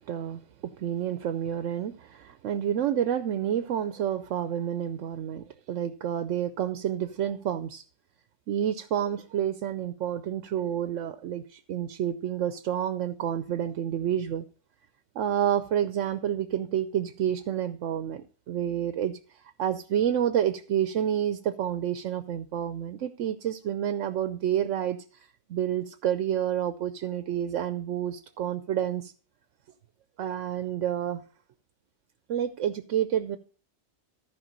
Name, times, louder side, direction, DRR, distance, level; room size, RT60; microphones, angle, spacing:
voice 1, 0.0-7.8 8.5-14.4 15.2-29.1 30.2-31.2 32.3-33.4, right 10 dB, 80° right, 1.0 m, -29 dB
14.0 x 5.2 x 5.2 m
omnidirectional pair, 1.3 m